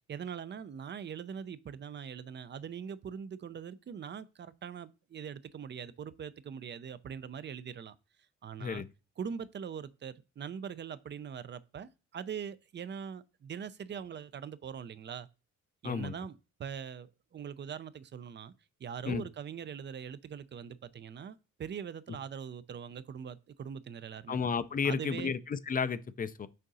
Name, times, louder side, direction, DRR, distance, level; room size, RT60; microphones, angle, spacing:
voice 1, 0.1-7.9 8.4-8.8 9.2-15.3 15.8-17.1 17.3-18.5 18.8-24.4 24.8-25.3, right 7 dB, 35° right, 0.5 m, -42 dB
voice 2, 15.8-16.2 19.1-19.3 24.3-26.5, left 6 dB, 30° left, 0.5 m, -32 dB
6.5 x 3.6 x 4.1 m
cardioid pair, 90°, 30 cm